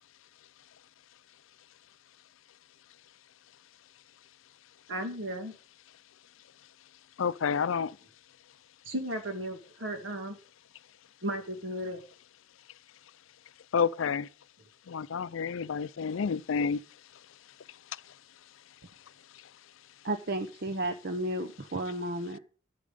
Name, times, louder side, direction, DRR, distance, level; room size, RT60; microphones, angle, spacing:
voice 1, 4.9-5.5 8.9-10.4 11.2-12.0, equal, 65° right, 2.1 m, -35 dB
voice 2, 7.2-8.0 13.7-14.3 14.9-16.8 17.7-18.1 19.3-19.5, left 6 dB, 70° left, 0.4 m, -30 dB
voice 3, 20.0-22.4, right 1 dB, 50° right, 0.8 m, -33 dB
10.0 x 8.6 x 5.3 m
head